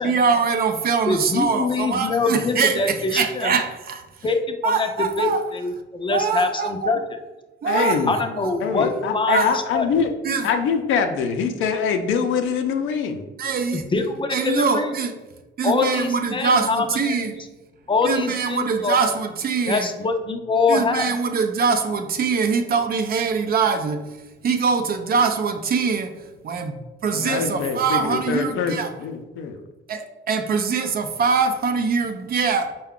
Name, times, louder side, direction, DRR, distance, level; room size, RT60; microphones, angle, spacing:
voice 1, 0.0-4.3 4.6-5.4 6.1-7.0 7.6-8.5 9.3-9.5 10.2-10.5 13.4-13.8 14.3-15.2 15.6-17.4 18.0-19.9 20.7-28.9 29.9-32.7, right 5 dB, 50° right, 7 dB, 0.5 m, -23 dB
voice 2, 1.1-3.5 4.2-7.0 8.1-9.4 9.7-10.1 13.7-14.9 15.6-17.2 17.9-19.0 19.7-21.1, left 4 dB, 25° left, 6 dB, 0.5 m, -24 dB
voice 3, 7.6-8.2 8.6-10.1 10.4-13.2 27.1-28.7 29.0-29.6, left 6 dB, 80° left, 6 dB, 0.5 m, -24 dB
4.6 x 2.2 x 3.6 m, 1.1 s
cardioid pair, 90°, 20 cm